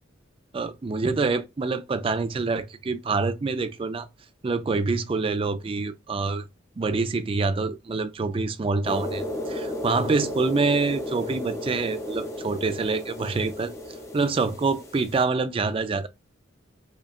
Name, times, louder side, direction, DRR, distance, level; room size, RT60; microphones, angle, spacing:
voice 1, 0.5-4.1 4.4-6.5 6.8-13.7 14.1-16.1, right 4 dB, 25° right, 0.3 m, -26 dB
sound 1, 8.8-15.2, left 1 dB, 15° left, 0.6 m, -34 dB
5.1 x 2.2 x 2.3 m
head